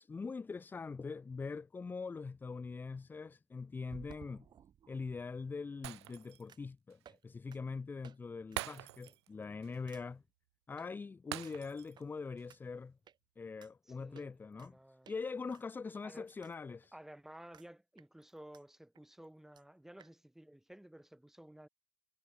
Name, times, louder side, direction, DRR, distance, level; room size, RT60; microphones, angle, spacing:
voice 1, 0.0-4.4 4.9-10.2 10.7-13.0 13.4-14.8 15.1-16.9, left 4 dB, 15° left, 0.9 m, -43 dB
sound 1, 3.9-5.2 6.5-6.7 7.0-7.2 7.5-7.6 8.0-8.2 8.5-8.7 9.1-9.3 9.9-10.0 10.8-10.9 11.4-12.1 12.5-12.6 13.1-13.2 13.6-13.7 14.2-14.7 15.0-15.2 15.5-16.6 16.8-16.9 17.5-17.7 18.0-18.6 19.0-19.1 19.2-19.3 19.6-19.7 20.0-20.1, right 9 dB, 30° right, 7.5 m, -58 dB
Shatter, 5.8-6.5 6.9-7.0 8.6-9.3 9.6-9.8 11.3-12.0 12.4-12.5, right 17 dB, 75° right, 0.9 m, -44 dB
voice 2, 13.8-15.1 16.0-16.3 16.9-21.7, right 1 dB, 5° right, 1.9 m, -55 dB
hypercardioid pair, 105°, 14 cm